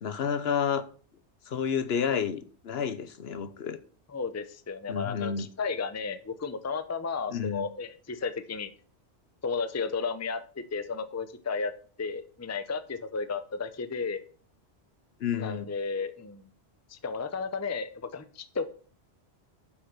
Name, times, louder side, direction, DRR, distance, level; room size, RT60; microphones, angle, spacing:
voice 1, 0.0-0.8 1.5-3.8 4.9-5.5 7.3-7.7 15.2-15.7, left 7 dB, 65° left, 1.0 m, -30 dB
voice 2, 4.1-8.7 9.4-11.7 12.0-14.2 15.4-16.5 16.9-18.7, left 4 dB, 20° left, 0.6 m, -33 dB
7.8 x 6.2 x 6.0 m
omnidirectional pair, 1.2 m